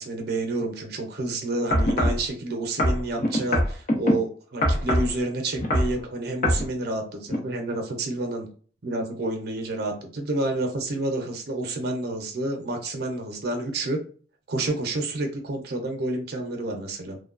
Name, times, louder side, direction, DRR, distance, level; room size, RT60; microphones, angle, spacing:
voice 1, 0.0-8.5 8.8-14.0 14.5-17.2, right 2 dB, 60° right, 3 dB, 0.6 m, -29 dB
sound 1, 1.7-2.2 2.8-4.1 4.6-5.1 5.6-5.9 6.4-6.6 7.3-7.4, equal, 50° left, 0.8 m, -22 dB
3.2 x 2.1 x 2.4 m, 0.42 s
head